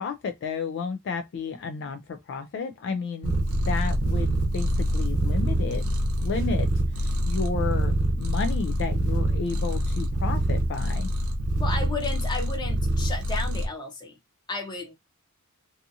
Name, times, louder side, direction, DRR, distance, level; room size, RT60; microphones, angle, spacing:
voice 1, 0.0-3.3 3.7-5.9 6.2-6.7 7.0-11.1, left 5 dB, 55° left, 0.3 m, -32 dB
Purr, 3.2-13.7, right 1 dB, 70° right, 0.6 m, -25 dB
voice 2, 11.6-14.2 14.5-14.9, left 3 dB, 20° left, 0.7 m, -33 dB
2.7 x 2.4 x 2.6 m
head